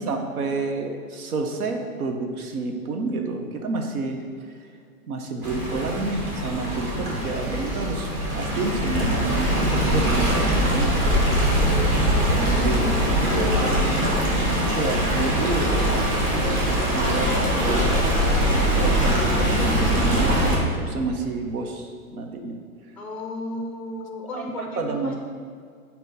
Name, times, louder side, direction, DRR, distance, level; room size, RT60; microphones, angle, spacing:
voice 1, 0.0-4.7 5.1-11.2 12.2-12.9 13.3-13.8 14.8-22.6 24.3-25.1, right 3 dB, 70° right, 4 dB, 1.1 m, -30 dB
Stream, 5.4-20.6, equal, 25° right, 1.4 m, -22 dB
voice 2, 11.6-14.0 23.0-25.1, left 2 dB, 5° left, 1 dB, 0.5 m, -34 dB
9.1 x 3.0 x 4.2 m, 2.2 s
hypercardioid pair, 135°, 45 cm